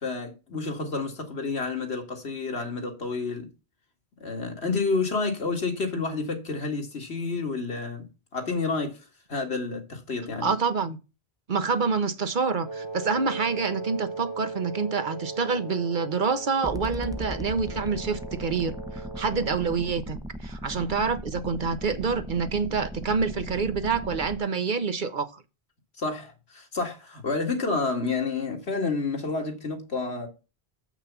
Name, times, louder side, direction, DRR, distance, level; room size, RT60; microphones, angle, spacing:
voice 1, 0.0-3.5 4.2-8.0 8.3-9.0 9.3-10.5 26.0-30.3, left 4 dB, 90° left, 2.1 m, -29 dB
voice 2, 10.4-11.0 11.5-25.3, right 5 dB, 55° right, 1.0 m, -27 dB
Wind instrument woodwind instrument, 12.6-20.0, right 3 dB, 25° left, 1.2 m, -38 dB
sound 1, 16.6-24.4, left 1 dB, 5° right, 0.6 m, -38 dB
7.1 x 6.1 x 6.9 m
omnidirectional pair, 1.0 m